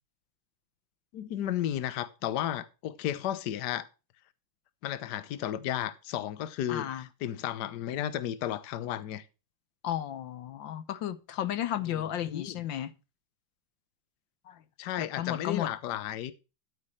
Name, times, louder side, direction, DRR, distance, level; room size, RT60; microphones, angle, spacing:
voice 1, 1.1-3.9 4.8-9.3 11.9-12.6 14.8-16.3, left 11 dB, 65° left, 1.3 m, -33 dB
voice 2, 6.7-7.0 9.8-12.9 14.5-14.6 15.2-15.7, left 11 dB, 80° left, 1.5 m, -33 dB
12.5 x 8.6 x 3.2 m
omnidirectional pair, 2.1 m